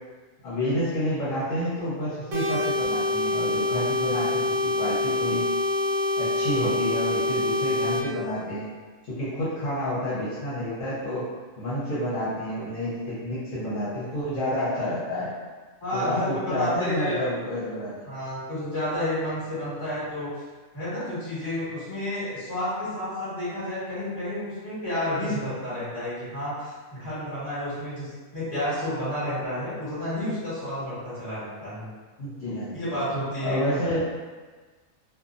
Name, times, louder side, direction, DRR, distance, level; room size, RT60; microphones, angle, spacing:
voice 1, 0.4-5.4 6.2-8.7 9.0-11.3 11.6-15.3 15.9-18.0 32.2-33.0 33.4-34.0, left 1 dB, 70° left, -10 dB, 1.2 m, -29 dB
sound 1, 2.3-8.0, left 2 dB, 60° right, 0.8 m, -25 dB
voice 2, 15.8-17.3 18.1-20.3 20.7-31.9 32.7-33.8, left 1 dB, 25° left, -12 dB, 1.4 m, -30 dB
2.7 x 2.3 x 2.5 m, 1.4 s
omnidirectional pair, 1.4 m